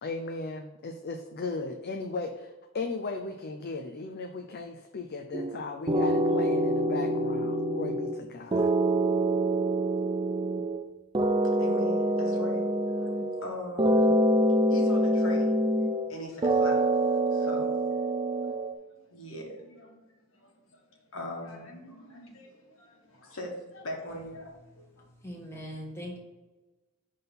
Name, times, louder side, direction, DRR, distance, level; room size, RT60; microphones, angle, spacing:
voice 1, 0.0-8.7, left 3 dB, 50° left, 4 dB, 0.5 m, -36 dB
sound 1, 5.3-5.6 5.9-8.2 8.5-10.8 11.1-13.5 13.8-16.1 16.4-18.7, right 1 dB, 25° right, 0.3 m, -26 dB
voice 2, 11.6-15.5 15.9-16.9 17.3-18.6 18.9-25.0, left 1 dB, 70° left, 0 dB, 1.6 m, -41 dB
voice 3, 25.2-26.2, equal, 10° left, -2 dB, 1.3 m, -40 dB
5.4 x 3.8 x 5.8 m, 1.2 s
head